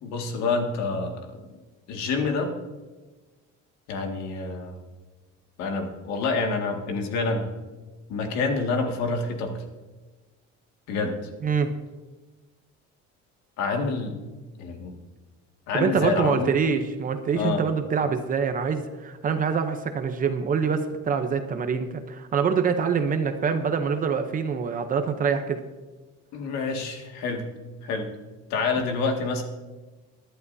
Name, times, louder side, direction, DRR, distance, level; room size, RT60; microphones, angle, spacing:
voice 1, 0.0-1.3 1.9-2.5 3.9-4.8 5.6-7.5 8.1-9.5 10.9-11.1 13.6-14.1 14.6-14.9 15.7-16.5 17.3-17.6 26.3-27.5 27.8-28.1 28.5-29.4, left 4 dB, 70° left, 3 dB, 2.1 m, -27 dB
voice 2, 11.4-11.7 15.7-25.6, right 6 dB, 30° right, 7 dB, 0.8 m, -25 dB
23.0 x 11.0 x 2.7 m, 1.3 s
cardioid pair, 170°, 29 cm